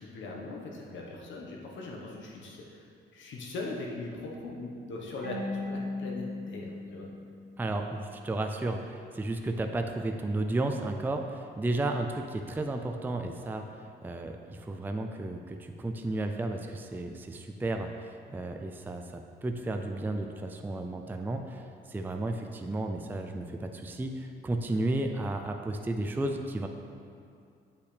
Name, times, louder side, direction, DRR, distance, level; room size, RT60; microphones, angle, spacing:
voice 1, 0.0-2.8 3.1-7.1 22.2-22.5, left 2 dB, 70° left, -1 dB, 1.3 m, -40 dB
Marimba xylophone / Wood, 5.2-8.0, left 2 dB, 65° right, 1.1 m, -38 dB
voice 2, 7.6-13.6 14.0-21.6 21.9-26.7, right 2 dB, 10° right, 4 dB, 0.4 m, -33 dB
8.1 x 5.6 x 3.4 m, 2.4 s
cardioid pair, 90°, 20 cm